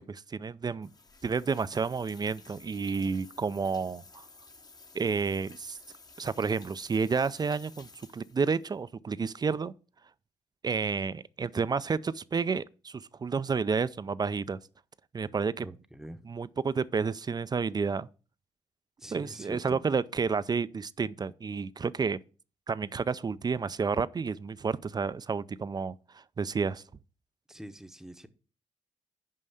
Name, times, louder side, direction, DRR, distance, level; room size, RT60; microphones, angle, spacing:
voice 1, 0.1-0.9 1.2-4.2 4.9-5.8 6.2-7.9 8.1-9.7 10.6-14.6 15.1-15.7 16.2-18.1 19.1-22.2 22.7-26.8, right 5 dB, 30° right, 0.4 m, -30 dB
sound 1, 0.8-8.7, left 3 dB, 30° left, 0.9 m, -54 dB
voice 2, 15.6-16.2 19.0-19.8 27.5-28.3, right 1 dB, 5° right, 0.8 m, -44 dB
5.5 x 5.3 x 6.4 m
cardioid pair, 65°, 13 cm